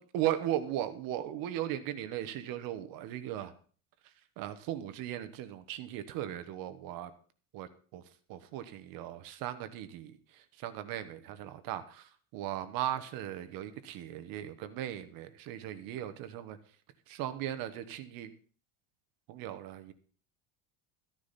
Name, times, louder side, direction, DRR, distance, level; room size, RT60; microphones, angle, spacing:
voice 1, 0.0-3.5 4.4-7.1 7.5-8.0 8.3-10.2 10.6-16.6 17.1-18.3 19.3-19.9, right 12 dB, 60° right, 10 dB, 1.2 m, -37 dB
13.5 x 10.0 x 4.1 m, 0.43 s
cardioid pair, 145°, 40 cm